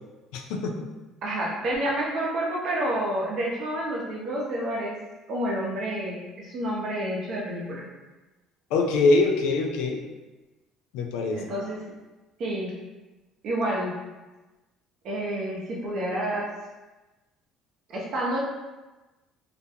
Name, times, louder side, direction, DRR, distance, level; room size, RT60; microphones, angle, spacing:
voice 1, 0.3-0.7 8.7-10.0 10.9-11.4, left 3 dB, 85° left, 3 dB, 0.3 m, -23 dB
voice 2, 1.2-4.9 5.3-7.9 11.3-12.0 12.4-12.7 13.4-14.0 15.0-16.5 17.9-18.4, right 1 dB, 55° right, -3 dB, 0.7 m, -29 dB
2.4 x 2.2 x 2.7 m, 1.1 s
cardioid pair, 105°, 0 cm